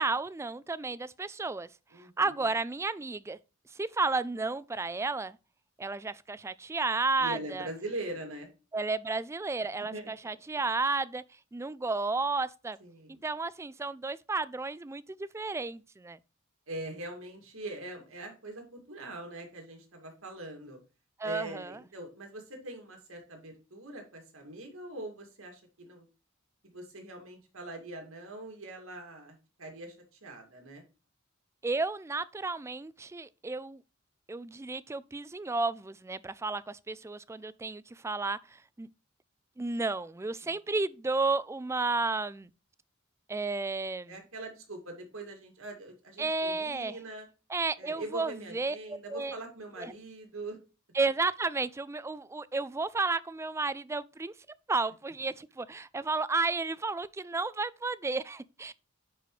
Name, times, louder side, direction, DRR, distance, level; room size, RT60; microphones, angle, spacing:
voice 1, 0.0-1.7 2.2-3.4 3.7-5.4 5.8-7.7 8.7-11.2 11.5-12.8 13.1-16.2 21.2-21.7 31.6-33.8 34.3-38.9 39.6-42.5 43.3-44.1 46.2-47.0 47.5-48.8 49.1-49.4 49.8-49.9 50.9-54.3 54.7-58.7, right 3 dB, 15° right, 0.3 m, -32 dB
voice 2, 1.9-2.4 7.2-8.5 9.9-10.1 12.8-13.2 16.7-20.8 21.2-26.1 26.6-30.8 40.4-40.6 44.1-47.3 47.8-50.6, right 2 dB, 75° right, 2.3 m, -42 dB
10.0 x 4.7 x 3.1 m
head